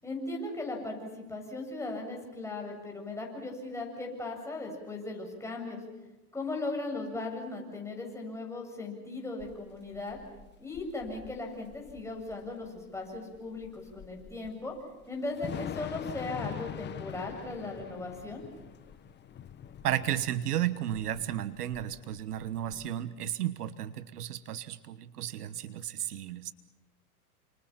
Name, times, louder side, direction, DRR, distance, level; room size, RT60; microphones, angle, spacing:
voice 1, 0.0-5.8 6.3-10.2 10.6-14.8 15.1-18.4, left 2 dB, 5° left, 0 dB, 7.3 m, -38 dB
Thunder / Rain, 9.4-22.9, left 9 dB, 25° left, 1.4 m, -45 dB
voice 2, 19.8-26.5, right 12 dB, 75° right, 14 dB, 1.3 m, -33 dB
29.5 x 27.0 x 5.9 m, 1.1 s
hypercardioid pair, 110°, 46 cm